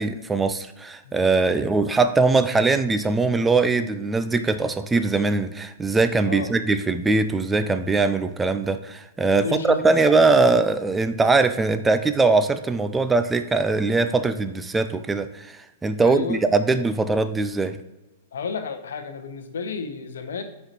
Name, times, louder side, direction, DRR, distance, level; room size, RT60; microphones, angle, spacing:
voice 1, 0.0-17.8, right 3 dB, 10° right, 10 dB, 0.3 m, -21 dB
voice 2, 9.2-10.3 16.0-16.5 18.3-20.4, left 5 dB, 70° left, 8 dB, 0.8 m, -32 dB
8.7 x 4.3 x 2.9 m, 0.98 s
figure-of-eight pair, 105°, 0 cm